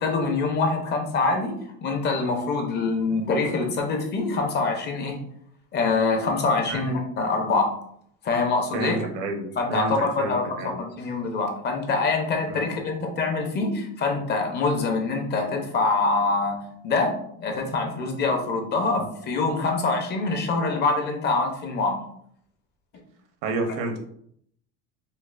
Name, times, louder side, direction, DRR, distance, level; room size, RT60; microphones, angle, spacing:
voice 1, 0.0-1.5 1.8-5.2 5.7-7.7 8.2-9.1 9.6-16.6 16.8-22.0 23.8-23.9, left 3 dB, 35° left, 3 dB, 0.6 m, -25 dB
voice 2, 8.7-10.8 12.5-12.7 19.0-19.1 23.4-24.0, right 2 dB, 70° right, 4 dB, 0.8 m, -30 dB
5.2 x 2.0 x 2.3 m, 0.66 s
cardioid pair, 145°, 32 cm